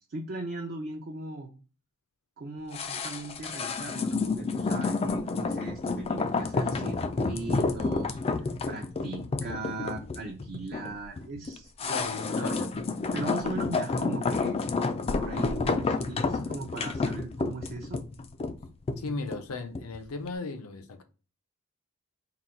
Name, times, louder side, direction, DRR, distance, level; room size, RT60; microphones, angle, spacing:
voice 1, 0.1-1.5 2.4-12.7 13.1-14.6 15.2-18.0, right 2 dB, 45° right, 0.6 m, -39 dB
sound 1, 2.7-20.0 20.3-20.4, left 3 dB, 25° left, 0.3 m, -30 dB
voice 2, 11.9-12.7 19.0-21.0, left 3 dB, 75° left, 0.6 m, -36 dB
3.9 x 2.2 x 4.3 m
head